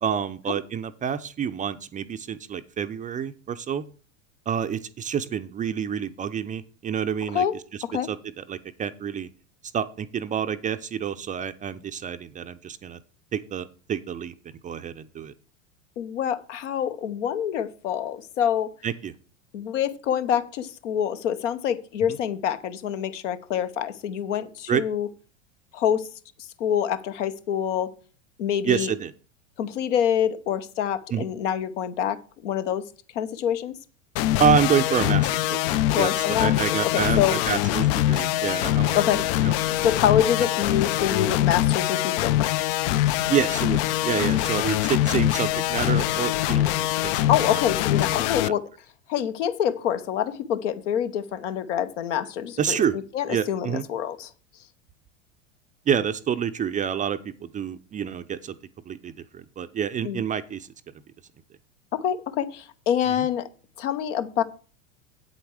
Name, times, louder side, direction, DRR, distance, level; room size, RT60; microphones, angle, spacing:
voice 1, 0.0-3.8 4.5-7.4 8.1-9.3 9.7-13.0 13.3-14.3 14.6-15.3 18.8-19.1 24.7-24.8 28.6-29.1 31.1-31.3 34.4-39.0 39.4-39.5 39.8-39.9 43.3-47.6 48.4-48.5 52.6-53.0 53.3-53.8 55.9-58.6 58.9-60.7 63.2-63.3, right 8 dB, 20° right, 10 dB, 0.5 m, -28 dB
voice 2, 16.0-18.7 19.5-25.1 25.7-26.1 26.6-27.9 28.4-28.9 29.6-32.9 33.1-33.7 35.9-37.4 38.9-39.2 39.8-42.5 47.3-48.7 49.1-54.3 60.0-60.2 61.9-63.5 63.8-64.4, left 9 dB, 70° left, 11 dB, 1.0 m, -26 dB
sound 1, 34.2-48.5, left 14 dB, 50° left, 0.5 m, -23 dB
8.4 x 8.0 x 4.8 m, 0.39 s
hypercardioid pair, 95°, 38 cm